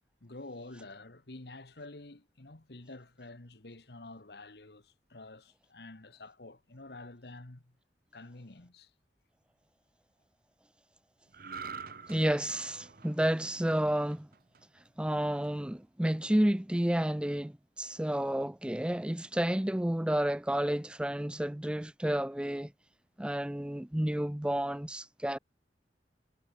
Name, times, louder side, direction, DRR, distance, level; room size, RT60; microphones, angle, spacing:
voice 1, 0.2-7.7 8.1-8.9 11.8-12.0, left 2 dB, 65° left, 1.6 m, -49 dB
sound 1, 11.3-14.8 15.2-15.5, right 5 dB, 55° right, 1.2 m, -46 dB
voice 2, 12.1-14.3 15.0-22.7 23.2-25.4, right 1 dB, 5° right, 0.5 m, -31 dB
head